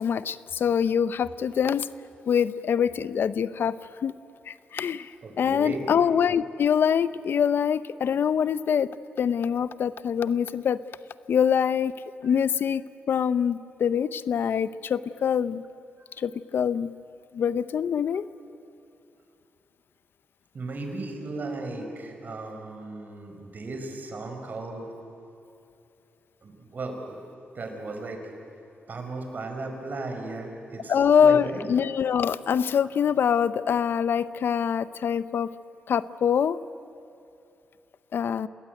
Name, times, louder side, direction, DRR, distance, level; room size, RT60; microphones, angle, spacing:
voice 1, 0.0-1.9 2.3-3.8 4.0-4.2 4.5-10.8 11.3-11.9 12.2-15.6 16.2-16.9 17.3-18.3 30.9-35.5 35.9-36.6 38.1-38.5, left 7 dB, 70° left, 16 dB, 0.6 m, -24 dB
voice 2, 5.2-5.9 12.2-12.4 20.5-24.8 26.4-27.2 27.5-28.3 28.9-31.7, right 2 dB, 50° right, 4 dB, 4.8 m, -36 dB
28.0 x 19.5 x 9.3 m, 2.6 s
cardioid pair, 90°, 4 cm